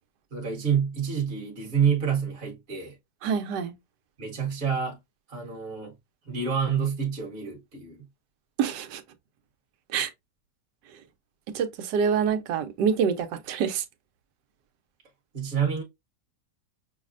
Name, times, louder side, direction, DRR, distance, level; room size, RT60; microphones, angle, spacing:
voice 1, 0.3-2.9 4.2-5.0 5.3-5.9 6.3-8.0 15.3-15.8, right 7 dB, 40° right, 1.2 m, -28 dB
voice 2, 3.2-3.7 8.6-9.0 9.9-10.1 11.5-13.8, right 7 dB, 80° right, 1.2 m, -26 dB
6.1 x 2.1 x 2.4 m
omnidirectional pair, 1.8 m